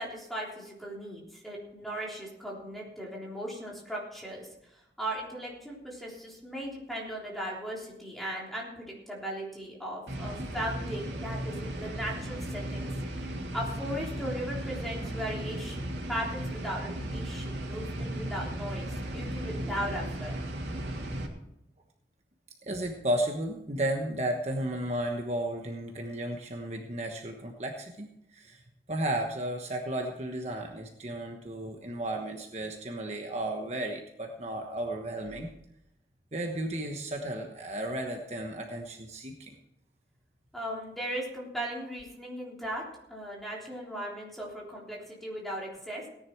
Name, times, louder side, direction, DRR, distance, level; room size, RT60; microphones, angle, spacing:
voice 1, 0.0-20.4 40.5-42.8 43.1-46.0, equal, ahead, -4 dB, 3.5 m, -38 dB
sound 1, 10.1-21.3, right 1 dB, 85° right, 2.7 m, -36 dB
voice 2, 22.6-28.6 28.9-35.5 36.3-39.6, right 1 dB, 40° right, 2 dB, 1.2 m, -34 dB
17.5 x 10.0 x 4.6 m, 0.82 s
head